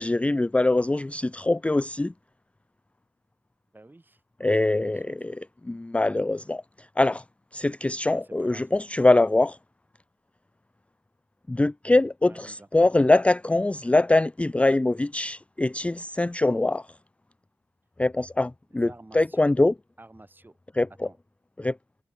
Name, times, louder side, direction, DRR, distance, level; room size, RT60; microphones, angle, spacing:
voice 1, 0.0-2.1 4.4-5.3 5.6-6.6 7.0-7.2 7.5-9.6 11.5-16.9 18.0-19.7 20.8-20.9 21.6-21.8, left 2 dB, 15° left, 0.4 m, -23 dB
voice 2, 3.7-4.2 4.5-5.4 8.1-8.7 12.2-12.7 18.7-19.5 20.0-20.5 21.0-21.2, right 2 dB, 25° right, 3.0 m, -50 dB
cardioid pair, 60°, 8 cm